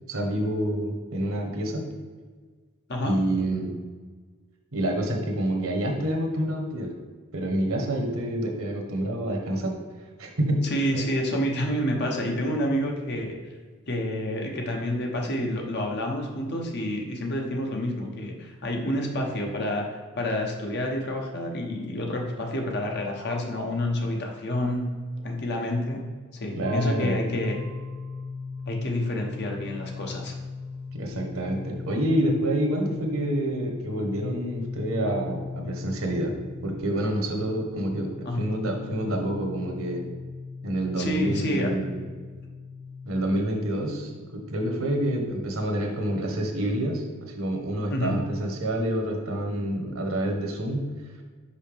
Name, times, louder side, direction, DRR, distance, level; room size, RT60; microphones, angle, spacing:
voice 1, 0.1-1.9 3.0-3.8 4.7-6.9 7.3-9.7 10.2-10.6 10.9-11.0 26.6-27.2 30.9-40.0 40.6-42.1 43.1-50.9, right 1 dB, 65° right, 2 dB, 1.1 m, -28 dB
voice 2, 10.6-13.3 13.9-24.9 25.2-26.0 26.3-27.6 28.7-30.4 38.2-38.4 41.0-41.7 47.9-48.2, left 1 dB, 50° left, 1 dB, 0.9 m, -28 dB
sound 1, 26.6-43.1, left 4 dB, 45° right, 0.7 m, -39 dB
5.5 x 5.3 x 3.4 m, 1.5 s
head